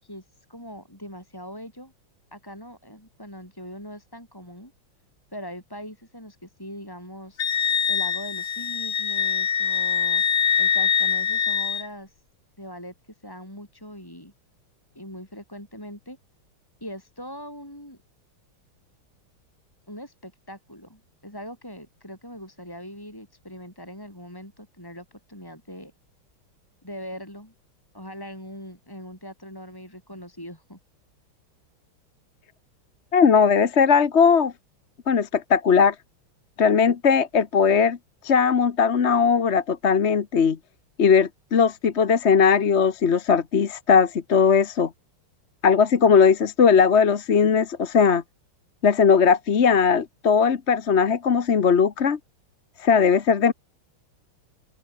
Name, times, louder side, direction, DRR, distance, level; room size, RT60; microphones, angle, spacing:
voice 1, 0.0-1.9 2.3-4.7 5.3-12.2 12.6-12.9 13.2-14.3 15.0-16.2 16.8-18.0 19.9-25.9 26.8-27.5 27.9-30.8, equal, 10° left, 7.2 m, -41 dB
Wind instrument woodwind instrument, 7.4-11.9, left 7 dB, 60° left, 2.4 m, -23 dB
voice 2, 33.1-34.5 35.1-35.9 36.6-38.0 38.2-40.6 41.0-44.9 45.6-48.2 48.8-52.2 52.8-53.5, left 6 dB, 40° left, 1.1 m, -19 dB
open air
omnidirectional pair, 2.3 m